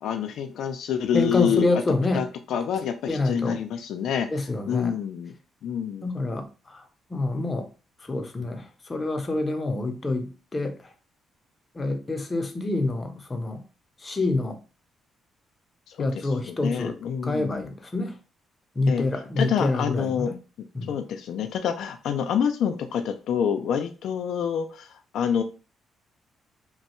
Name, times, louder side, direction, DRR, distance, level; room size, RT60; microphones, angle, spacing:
voice 1, 0.0-1.8 2.1-4.3 4.7-5.3 5.6-6.1 15.9-17.7 18.9-19.1 19.4-20.3 20.9-25.4, left 8 dB, 75° left, 0.3 m, -27 dB
voice 2, 1.1-2.2 3.1-3.6 4.3-4.9 6.0-6.8 7.1-7.7 8.0-10.8 11.7-13.6 14.0-14.6 16.0-17.0 17.2-18.1 18.8-20.4 20.7-20.9, left 2 dB, 25° left, 0.6 m, -27 dB
3.1 x 2.2 x 3.0 m
cardioid pair, 90°, 0 cm